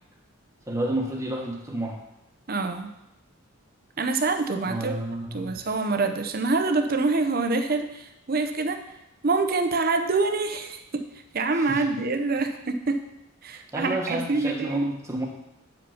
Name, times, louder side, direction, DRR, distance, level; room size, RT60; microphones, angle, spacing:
voice 1, 0.7-2.0 4.7-5.6 11.5-11.9 13.5-15.3, right 1 dB, 15° right, 0 dB, 1.2 m, -31 dB
voice 2, 2.5-2.9 4.0-5.0 5.3-8.8 9.2-11.0 11.3-13.0 13.4-14.9, right 3 dB, 45° right, 6 dB, 0.7 m, -26 dB
8.5 x 5.2 x 5.7 m, 0.87 s
head